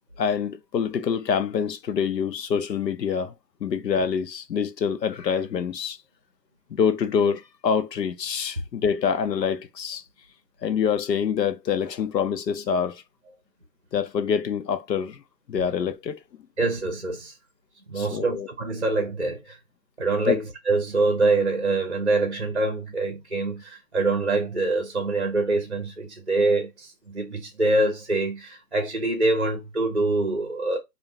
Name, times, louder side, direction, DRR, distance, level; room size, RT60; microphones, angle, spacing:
voice 1, 0.2-3.3 3.6-6.0 6.7-10.0 10.6-13.0 13.9-15.2 15.5-16.2 18.0-18.5 20.3-20.4, left 7 dB, 80° left, 0.6 m, -26 dB
voice 2, 16.6-17.3 17.9-19.6 20.0-30.8, right 2 dB, 45° right, 0.6 m, -25 dB
2.3 x 2.0 x 3.4 m
hypercardioid pair, 180°, 50 cm